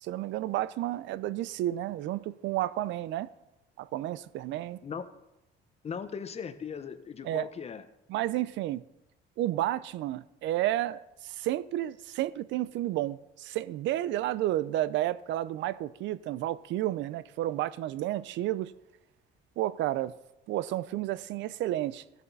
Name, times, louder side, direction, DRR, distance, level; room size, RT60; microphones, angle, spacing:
voice 1, 0.0-3.3 3.8-4.8 7.2-7.5 8.1-8.8 9.4-18.7 19.6-20.1 20.5-22.0, right 14 dB, 70° right, 0.5 m, -31 dB
voice 2, 5.8-7.9, left 6 dB, 35° left, 0.8 m, -38 dB
15.5 x 7.1 x 4.0 m
cardioid pair, 120°, 20 cm